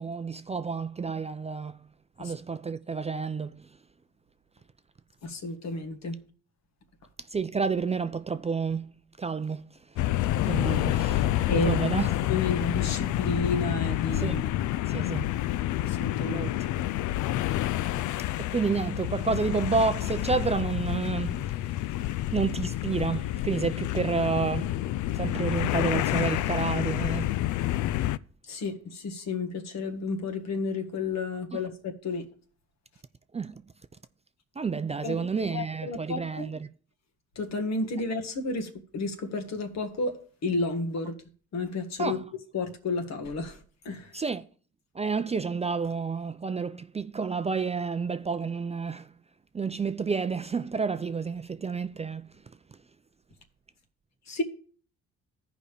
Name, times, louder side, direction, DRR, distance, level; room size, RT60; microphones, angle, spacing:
voice 1, 0.0-1.8 2.2-3.7 7.3-8.9 9.2-9.6 10.4-12.3 14.1-14.4 14.9-15.3 16.3-16.5 18.4-21.6 22.0-24.9 25.1-27.3 31.5-31.6 33.3-33.6 34.6-36.7 42.0-42.2 44.1-44.4 45.0-49.1 49.5-52.2, right 5 dB, 20° right, 0.4 m, -30 dB
voice 2, 5.2-6.1 11.5-11.7 12.3-14.4 15.8-16.4 28.4-32.2 35.0-36.6 37.3-41.1 41.5-42.2 42.5-44.1 54.3-54.4, left 3 dB, 60° left, 1.6 m, -31 dB
sound 1, 10.0-28.2, left 14 dB, 75° left, 0.4 m, -28 dB
15.0 x 5.1 x 3.4 m
cardioid pair, 90°, 30 cm